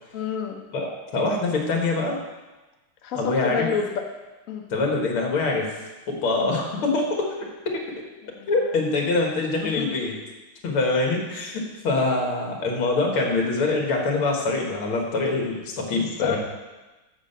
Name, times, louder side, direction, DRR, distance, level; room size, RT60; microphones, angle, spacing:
voice 1, 0.1-0.6 3.0-4.1 4.5-4.7 8.2-9.1 9.6-9.9 16.0-16.4, left 7 dB, 55° left, 3 dB, 0.9 m, -30 dB
voice 2, 0.7-2.2 3.1-3.7 4.7-5.7 6.1-7.8 8.5-10.2 10.6-16.4, left 3 dB, 75° left, 0 dB, 2.4 m, -24 dB
7.4 x 6.6 x 6.7 m, 1.1 s
omnidirectional pair, 2.4 m